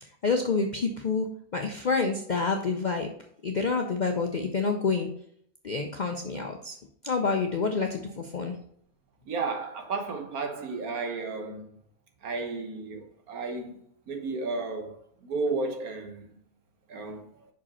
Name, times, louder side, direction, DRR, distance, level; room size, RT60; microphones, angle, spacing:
voice 1, 0.0-1.3 1.5-3.1 3.4-5.1 5.6-6.8 7.0-8.5, left 4 dB, 60° left, 0.4 m, -28 dB
voice 2, 9.3-11.6 12.2-13.8 14.1-16.3 16.9-17.3, right 3 dB, 80° right, 1.6 m, -33 dB
5.9 x 5.0 x 4.2 m
omnidirectional pair, 1.5 m